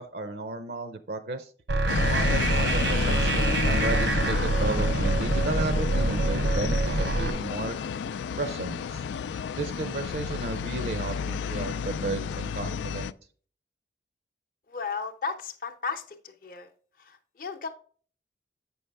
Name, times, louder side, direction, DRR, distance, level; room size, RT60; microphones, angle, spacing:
voice 1, 0.0-1.5 2.1-7.8 8.4-9.0 9.6-13.1, right 2 dB, 60° right, 9 dB, 0.5 m, -33 dB
sound 1, 1.7-7.3, right 2 dB, 80° right, 1.0 m, -25 dB
sound 2, 1.9-13.1, left 6 dB, 85° left, 0.3 m, -31 dB
voice 2, 14.7-16.0 16.4-16.7 17.1-17.7, left 5 dB, 50° left, 4 dB, 0.7 m, -34 dB
8.1 x 5.5 x 3.4 m, 0.43 s
head